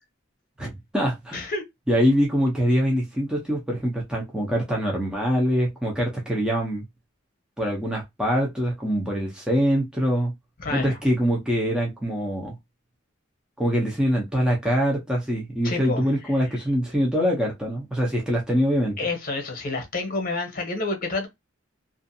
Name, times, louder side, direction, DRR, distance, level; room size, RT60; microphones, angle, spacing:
voice 1, 0.6-1.5 1.9-6.8 7.6-10.3 10.7-12.5 13.6-19.0, equal, 5° right, 0.6 m, -24 dB
voice 2, 1.3-1.6 10.6-11.0 15.6-16.0 19.0-21.3, left 3 dB, 45° left, 0.9 m, -29 dB
2.5 x 2.4 x 2.6 m
head